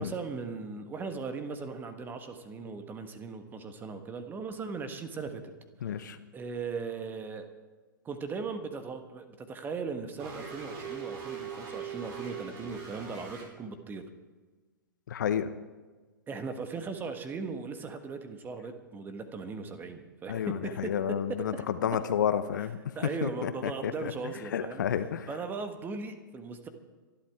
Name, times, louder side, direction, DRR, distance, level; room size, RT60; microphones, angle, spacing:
voice 1, 0.0-5.4 5.8-7.5 8.0-14.0 16.3-21.6 22.9-24.8 25.3-26.7, right 4 dB, 15° right, 8 dB, 1.5 m, -38 dB
voice 2, 5.8-6.2 15.1-15.5 20.3-22.8 23.2-24.1 24.5-25.3, left 9 dB, 60° left, 11 dB, 1.0 m, -30 dB
sound 1, 10.2-13.4, right 6 dB, 45° right, 4.7 m, -40 dB
24.5 x 11.5 x 3.7 m, 1.3 s
figure-of-eight pair, 110°, 11 cm